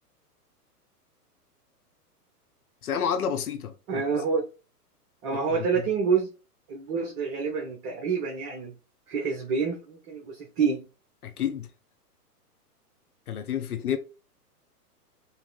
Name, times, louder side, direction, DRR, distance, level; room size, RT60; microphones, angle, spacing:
voice 1, 2.8-4.0 5.3-5.7 11.2-11.7 13.3-14.0, left 8 dB, 65° left, 1.0 m, -30 dB
voice 2, 3.9-4.4 5.2-6.3 6.7-8.7 9.1-10.9, right 5 dB, 35° right, 1.2 m, -27 dB
4.1 x 3.1 x 4.1 m
figure-of-eight pair, 110°, 47 cm